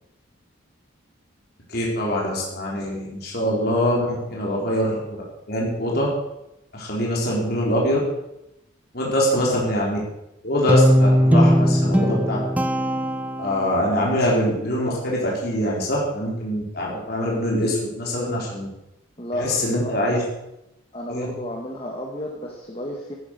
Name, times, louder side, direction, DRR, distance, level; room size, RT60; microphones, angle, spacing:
voice 1, 1.7-5.0 5.5-6.1 6.7-8.0 8.9-10.0 10.4-12.4 13.4-18.7 19.3-20.2 21.1-21.3, equal, 50° left, -4 dB, 4.5 m, -23 dB
voice 2, 4.3-4.7 9.0-9.5 19.2-20.3 20.9-23.1, left 1 dB, 30° left, -1 dB, 1.9 m, -33 dB
Guitar, 10.7-14.0, equal, 10° right, 0.8 m, -19 dB
14.0 x 10.0 x 6.8 m, 0.86 s
head